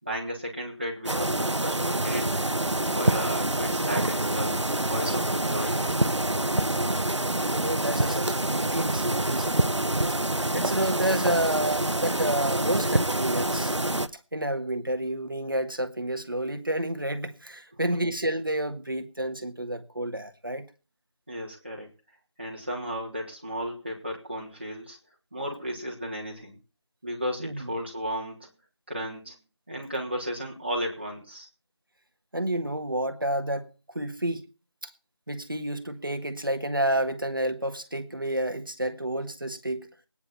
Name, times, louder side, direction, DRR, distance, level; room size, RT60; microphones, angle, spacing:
voice 1, 0.0-2.4 2.9-6.3 21.3-21.9 22.4-25.0 25.3-26.6 27.0-28.5 28.9-29.4 29.7-31.5, equal, 25° right, 3.3 m, -34 dB
sound 1, 1.1-14.1, right 1 dB, 80° right, 1.1 m, -26 dB
voice 2, 7.5-9.7 10.5-13.7 14.3-20.6 27.4-27.7 32.3-33.7 33.9-34.4 34.8-34.9 35.3-39.9, right 1 dB, 50° right, 1.8 m, -29 dB
19.5 x 10.0 x 4.3 m
figure-of-eight pair, 175°, 15 cm